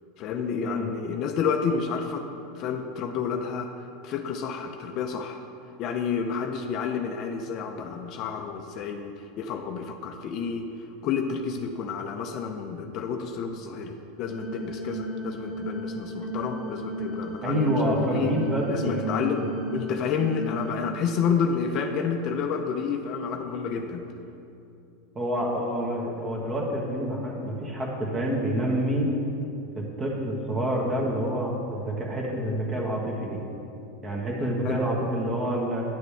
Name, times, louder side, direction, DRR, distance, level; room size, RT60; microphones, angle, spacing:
voice 1, 0.2-2.3 2.5-3.7 4.0-5.4 5.8-10.7 11.0-18.3 18.7-24.1 34.6-34.8, left 6 dB, 45° left, 5 dB, 0.6 m, -30 dB
sound 1, 14.3-20.7, right 1 dB, ahead, 2.0 m, -34 dB
voice 2, 17.4-19.5 25.1-29.1 29.7-33.4 34.0-35.8, equal, 25° right, -1 dB, 1.4 m, -27 dB
10.0 x 6.7 x 3.5 m, 2.7 s
supercardioid pair, 130°, 0 cm